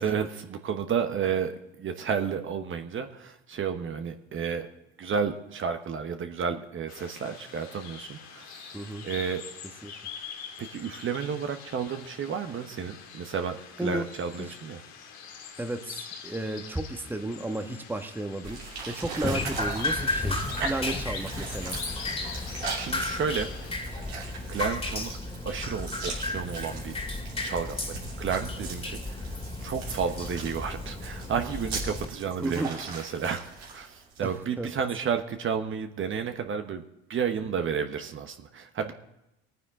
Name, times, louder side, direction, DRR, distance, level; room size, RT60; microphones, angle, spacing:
voice 1, 0.0-1.5 1.8-4.7 5.0-8.7 9.0-9.4 10.6-14.8 22.7-23.5 24.5-25.1 25.4-26.9 27.4-27.9 28.2-33.4 33.7-36.8 37.1-38.9, right 6 dB, 40° right, 6 dB, 1.2 m, -31 dB
sound 1, 6.9-23.7, left 7 dB, 65° left, 1.9 m, -44 dB
voice 2, 8.7-9.0 9.8-9.9 13.8-14.1 14.5-14.6 15.6-21.8 32.4-32.7 34.2-34.3 34.6-34.7, right 1 dB, 5° right, 6 dB, 1.2 m, -33 dB
sound 2, 18.4-34.4, right 4 dB, 85° right, 3.3 m, -40 dB
Drip, 19.2-32.1, left 2 dB, 20° left, 2.2 m, -34 dB
21.5 x 9.4 x 3.7 m, 0.88 s
hypercardioid pair, 65°, 30 cm